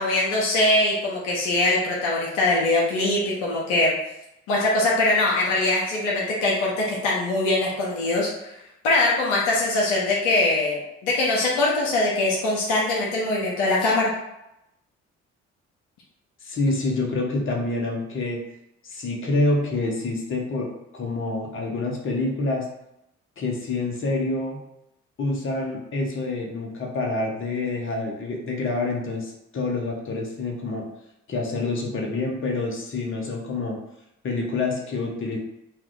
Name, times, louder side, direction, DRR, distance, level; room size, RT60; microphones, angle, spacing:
voice 1, 0.0-3.9 4.5-8.6 8.8-14.1, left 2 dB, 75° left, -4 dB, 0.7 m, -22 dB
voice 2, 16.4-18.4 18.8-20.7 20.9-22.7 23.4-24.6 25.2-30.9 31.3-33.8 34.2-35.4, left 2 dB, 35° left, 0 dB, 0.9 m, -27 dB
2.7 x 2.3 x 3.5 m, 0.85 s
figure-of-eight pair, 45°, 36 cm